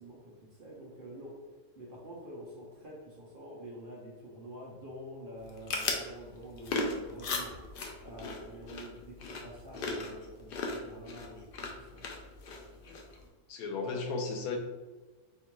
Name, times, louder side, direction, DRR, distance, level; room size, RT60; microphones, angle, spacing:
voice 1, 0.0-1.4 1.8-7.6 8.0-12.1 13.8-14.1, right 1 dB, 55° right, -4 dB, 0.6 m, -47 dB
sound 1, 5.4-13.3, left 3 dB, 70° left, 0.5 m, -38 dB
voice 2, 13.5-14.6, left 4 dB, 85° left, 3 dB, 1.1 m, -35 dB
4.3 x 2.4 x 3.0 m, 1.2 s
omnidirectional pair, 1.5 m